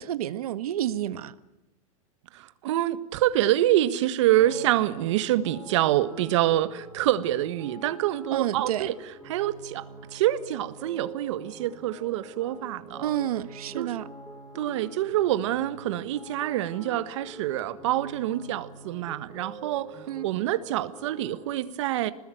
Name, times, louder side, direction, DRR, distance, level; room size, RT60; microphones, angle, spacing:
voice 1, 0.0-1.3 8.3-8.9 13.0-14.0 20.1-20.3, right 12 dB, 85° right, 1.4 m, -29 dB
voice 2, 2.3-8.9 9.3-9.8 10.1-13.1 13.8-14.0 14.5-20.0 20.2-22.1, right 14 dB, 55° right, 1.6 m, -26 dB
sound 1, 4.4-21.5, right 1 dB, 5° left, 5.5 m, -45 dB
26.0 x 20.5 x 9.4 m
supercardioid pair, 170°, 19 cm